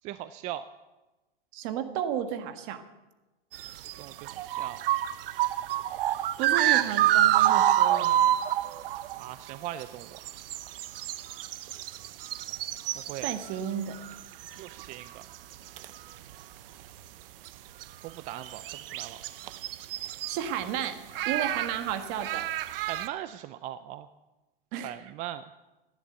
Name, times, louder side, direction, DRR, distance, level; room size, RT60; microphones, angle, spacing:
voice 1, 0.0-0.6 4.0-4.8 9.2-10.2 13.0-13.3 14.6-15.3 18.0-19.2 22.9-24.1 24.8-25.4, right 13 dB, 25° right, 12 dB, 0.4 m, -39 dB
voice 2, 1.5-2.8 6.4-8.3 13.2-14.0 20.3-22.5 24.7-25.0, right 9 dB, 45° right, 8 dB, 1.7 m, -33 dB
sound 1, 3.5-9.2 9.5-9.6 9.8-13.7 13.9-14.9 15.3-15.9 16.3-16.4 17.5-17.6 17.8-17.9 18.3-20.4 21.1-23.1, right 12 dB, 65° right, 0.9 m, -27 dB
15.5 x 10.5 x 8.1 m, 1.1 s
hypercardioid pair, 135°, 30 cm